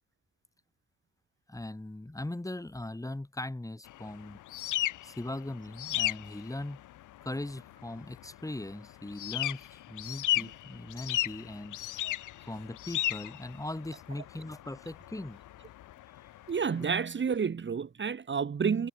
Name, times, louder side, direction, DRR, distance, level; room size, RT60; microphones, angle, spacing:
voice 1, 1.5-4.4 5.0-6.8 7.2-11.8 12.5-15.4, left 1 dB, 10° left, 6.8 m, -39 dB
sound 1, 3.9-17.0, left 14 dB, 80° left, 2.5 m, -36 dB
voice 2, 16.5-18.9, right 6 dB, 40° right, 2.4 m, -30 dB
cardioid pair, 90°, 30 cm